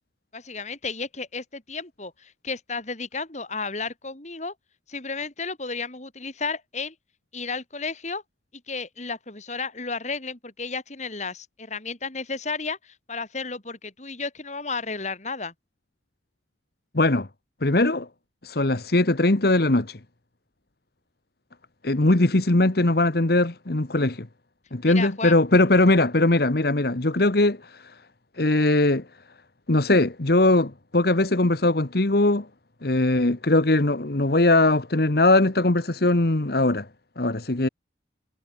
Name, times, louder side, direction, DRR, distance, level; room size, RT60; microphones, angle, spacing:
voice 1, 0.3-4.5 4.9-6.9 7.3-8.2 8.7-15.5 24.8-25.4, left 4 dB, 40° left, 3.1 m, -33 dB
voice 2, 16.9-17.3 17.6-18.1 18.4-20.0 21.8-24.3 24.7-27.9 28.4-29.0 29.7-32.5 32.8-36.9 37.2-37.7, left 2 dB, 55° left, 1.4 m, -20 dB
head